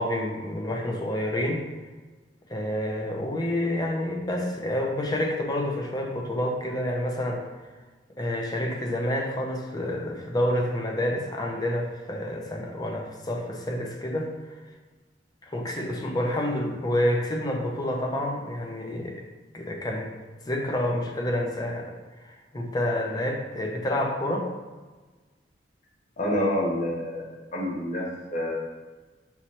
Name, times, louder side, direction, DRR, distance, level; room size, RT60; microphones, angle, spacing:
voice 1, 0.0-1.6 2.5-7.5 8.2-14.3 15.5-19.2 19.5-20.1 20.5-21.9 22.2-24.5, left 1 dB, 25° left, 1 dB, 0.6 m, -28 dB
voice 2, 26.2-28.5, left 1 dB, 45° left, -3 dB, 1.0 m, -28 dB
5.6 x 3.1 x 2.9 m, 1.3 s
head